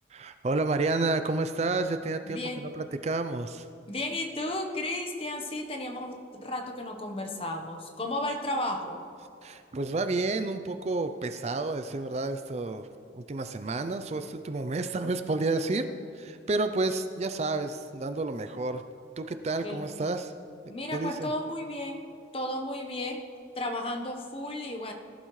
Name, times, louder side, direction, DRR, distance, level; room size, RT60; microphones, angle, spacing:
voice 1, 0.1-3.7 9.4-12.9 13.1-15.9 16.1-18.8 19.2-20.3 20.9-21.3, right 3 dB, 35° right, 9 dB, 0.4 m, -30 dB
voice 2, 2.3-2.7 3.9-9.0 19.6-20.1 20.7-22.0 22.3-23.2 23.5-24.9, left 1 dB, 30° left, 3 dB, 1.0 m, -34 dB
18.5 x 11.5 x 3.2 m, 2.5 s
head